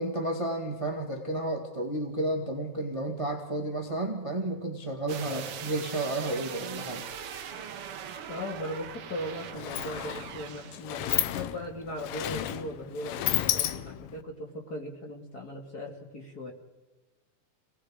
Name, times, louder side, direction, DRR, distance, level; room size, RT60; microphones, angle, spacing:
voice 1, 0.0-7.1, right 1 dB, 30° right, 3 dB, 0.5 m, -32 dB
sound 1, 5.1-10.8 11.1-11.2, right 8 dB, 80° right, 1.2 m, -41 dB
voice 2, 8.3-16.5, left 1 dB, 30° left, 1 dB, 2.1 m, -38 dB
Sliding door, 8.9-9.0 9.3-14.2, left 13 dB, 75° left, 2.4 m, -32 dB
28.0 x 18.5 x 5.0 m, 1.1 s
omnidirectional pair, 4.3 m